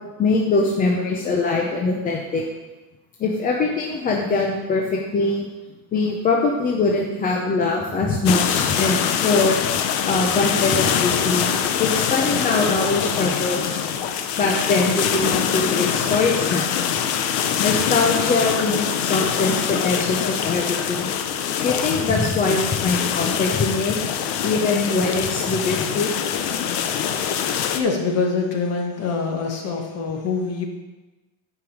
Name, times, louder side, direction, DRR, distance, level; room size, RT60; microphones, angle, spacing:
voice 1, 0.2-2.4 3.2-5.5 5.9-9.6 10.0-13.8 14.4-16.8 17.6-21.1 21.6-24.0 24.4-26.1, left 3 dB, 20° left, 0 dB, 0.6 m, -22 dB
sound 1, 8.3-27.8, left 8 dB, 60° left, 0.9 m, -24 dB
voice 2, 26.7-30.7, left 4 dB, 35° left, 2 dB, 1.4 m, -26 dB
9.6 x 5.2 x 7.2 m, 1.1 s
cardioid pair, 180°, 43 cm